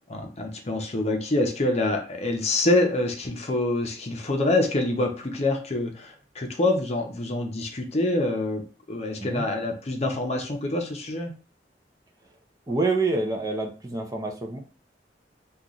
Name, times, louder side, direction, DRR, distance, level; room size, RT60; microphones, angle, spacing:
voice 1, 0.1-11.3, left 2 dB, 40° left, 3 dB, 0.6 m, -26 dB
voice 2, 12.7-14.6, right 3 dB, 20° right, 1 dB, 0.5 m, -27 dB
3.0 x 2.4 x 3.7 m, 0.36 s
head